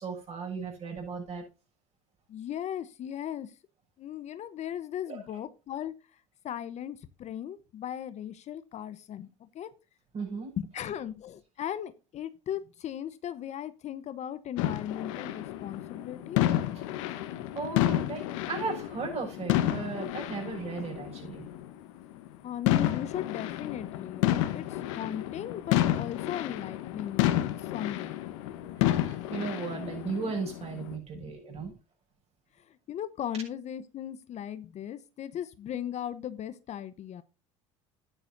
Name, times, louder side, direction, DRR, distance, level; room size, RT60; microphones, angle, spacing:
voice 1, 0.0-1.4 5.1-5.2 10.1-10.5 17.5-21.4 28.8-31.7, right 4 dB, 40° right, 6.7 m, -36 dB
voice 2, 2.3-3.5 4.0-9.7 10.6-16.4 22.4-27.3 27.7-28.3 31.1-31.7 32.6-37.2, left 10 dB, 45° left, 0.9 m, -38 dB
sound 1, 14.6-21.7 22.3-22.4 22.7-31.0, left 13 dB, 75° left, 1.2 m, -30 dB
12.0 x 10.0 x 2.7 m
hypercardioid pair, 85°, 16 cm